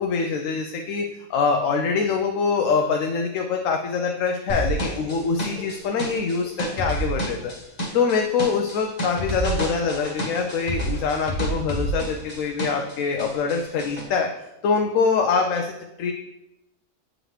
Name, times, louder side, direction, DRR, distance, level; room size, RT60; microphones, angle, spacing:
voice 1, 0.0-7.5 7.9-14.3 14.6-16.1, left 5 dB, 85° left, 2 dB, 1.0 m, -24 dB
sound 1, 4.5-12.9 13.2-14.0, right 1 dB, 35° left, 1.2 m, -28 dB
7.9 x 3.8 x 3.1 m, 0.91 s
omnidirectional pair, 1.3 m